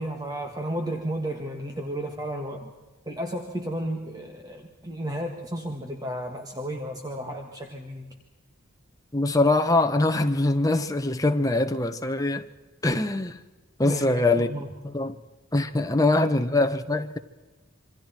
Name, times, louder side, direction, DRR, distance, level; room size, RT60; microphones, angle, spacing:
voice 1, 0.0-2.7 3.0-8.1 13.8-14.7 15.8-16.4, right 1 dB, 20° right, 1.7 m, -33 dB
voice 2, 9.1-12.5 12.8-13.4 13.8-14.5 14.8-15.2 15.5-17.2, left 2 dB, 15° left, 1.1 m, -23 dB
27.5 x 24.5 x 4.5 m
head